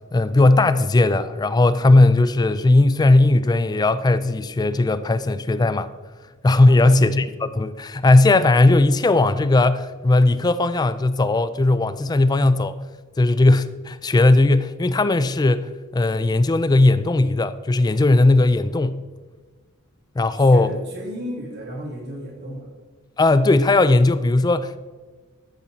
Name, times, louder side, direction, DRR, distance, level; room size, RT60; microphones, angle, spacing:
voice 1, 0.1-5.9 6.4-12.8 13.2-19.0 20.2-20.7 23.2-24.8, left 2 dB, 20° left, 0.3 m, -17 dB
voice 2, 6.6-7.0 20.3-22.7, equal, 50° right, 2.6 m, -34 dB
13.0 x 7.3 x 4.1 m
head